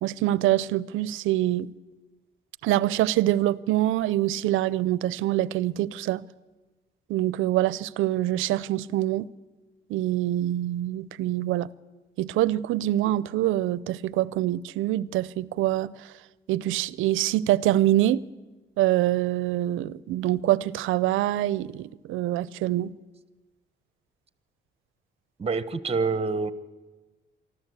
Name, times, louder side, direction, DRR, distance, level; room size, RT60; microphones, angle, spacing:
voice 1, 0.0-1.7 2.6-6.2 7.1-9.3 9.9-11.7 12.2-15.9 16.5-18.2 18.8-22.9, right 14 dB, 90° right, 0.6 m, -25 dB
voice 2, 25.4-26.5, right 4 dB, 30° right, 1.3 m, -26 dB
24.5 x 13.5 x 8.2 m
cardioid pair, 90°, 20 cm